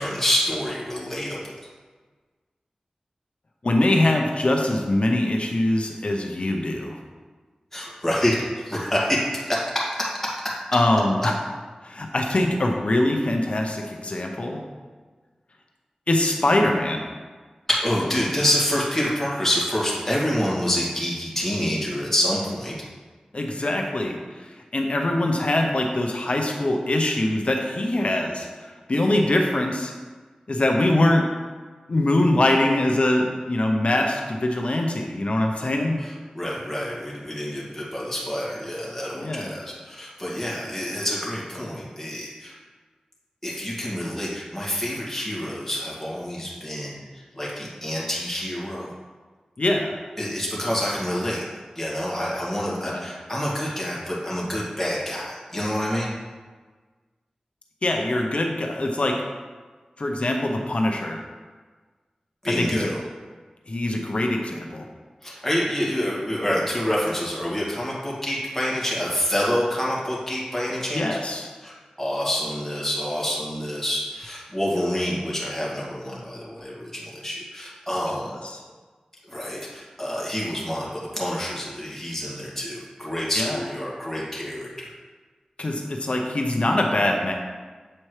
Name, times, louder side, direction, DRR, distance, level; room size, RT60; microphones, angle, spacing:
voice 1, 0.0-1.5 7.7-10.4 17.7-22.7 36.0-42.5 43.4-48.9 50.2-51.4 51.8-56.2 62.4-63.0 65.2-71.1 71.6-78.3 79.3-84.9, equal, 10° left, -6 dB, 1.9 m, -27 dB
voice 2, 3.6-7.0 10.7-11.3 11.8-14.6 16.1-17.0 23.3-29.9 30.5-31.2 31.9-36.0 39.1-39.5 49.6-49.9 52.8-53.0 57.8-59.1 60.0-61.2 62.6-62.9 63.7-64.8 70.9-71.5 78.4-78.6 83.4-83.6 85.6-87.3, left 1 dB, 55° left, 2 dB, 0.7 m, -23 dB
7.7 x 4.3 x 3.2 m, 1.4 s
wide cardioid pair, 60°, 2 cm